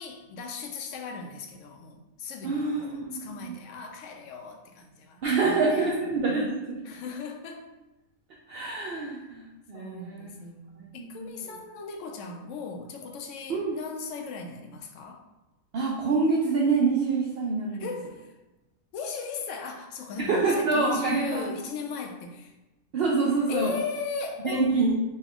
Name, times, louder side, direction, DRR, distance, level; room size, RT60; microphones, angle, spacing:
voice 1, 0.0-5.9 6.8-7.6 8.9-9.3 9.7-15.2 17.7-18.3 18.9-22.5 23.5-24.9, left 5 dB, 65° left, 4 dB, 0.8 m, -37 dB
voice 2, 2.4-3.6 5.2-6.8 8.5-9.4 9.7-10.3 11.0-11.1 13.5-13.8 15.7-17.8 20.2-21.5 22.9-23.7 24.4-24.9, right 3 dB, 65° right, -3 dB, 0.6 m, -26 dB
4.2 x 2.3 x 3.6 m, 1.0 s
omnidirectional pair, 1.5 m